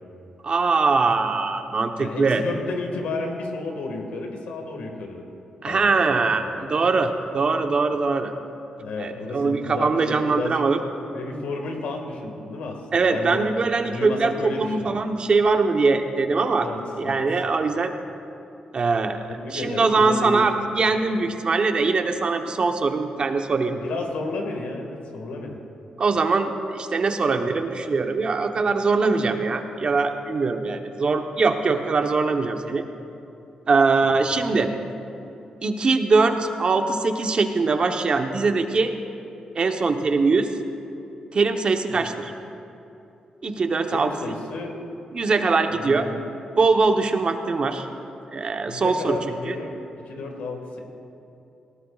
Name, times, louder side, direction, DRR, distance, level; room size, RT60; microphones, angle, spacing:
voice 1, 0.4-2.4 5.6-8.3 9.0-10.8 12.9-16.7 17.0-17.9 18.7-19.2 19.5-23.8 26.0-32.8 33.7-34.7 35.6-38.9 39.5-40.5 41.3-42.3 43.4-44.1 45.1-46.1 46.6-47.9 48.3-49.2 49.5-49.6, right 4 dB, 45° right, 6 dB, 1.0 m, -22 dB
voice 2, 2.0-5.3 5.6-6.0 6.3-6.6 8.8-10.6 11.1-13.5 13.9-15.0 16.6-17.2 19.3-20.7 23.7-25.6 33.7-34.2 41.9-42.2 43.9-44.8 45.7-46.2 48.7-49.8 50.1-50.8, left 3 dB, 85° left, 2 dB, 1.8 m, -32 dB
18.5 x 18.0 x 2.4 m, 2.8 s
cardioid pair, 80°, 2 cm